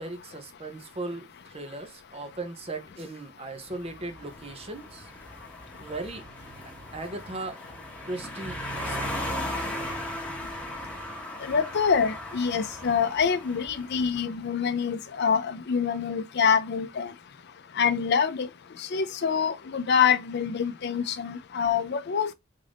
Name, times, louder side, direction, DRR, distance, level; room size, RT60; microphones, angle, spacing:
voice 1, 0.0-5.1 5.8-6.2 6.9-7.6 8.1-9.2, right 2 dB, 30° right, 0.7 m, -37 dB
sound 1, 3.8-14.1, left 1 dB, 5° left, 1.0 m, -37 dB
voice 2, 11.4-17.1 17.8-18.5 18.9-22.3, left 6 dB, 55° left, 0.5 m, -25 dB
3.7 x 2.6 x 3.4 m
head